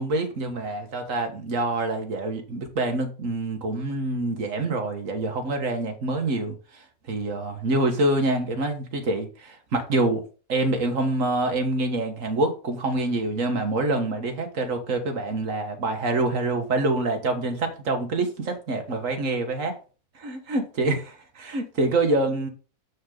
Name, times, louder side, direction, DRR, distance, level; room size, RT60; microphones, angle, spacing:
voice 1, 0.0-10.2 10.5-19.8 20.2-22.5, right 2 dB, 70° right, 1.8 m, -26 dB
7.1 x 6.3 x 3.8 m
omnidirectional pair, 1.4 m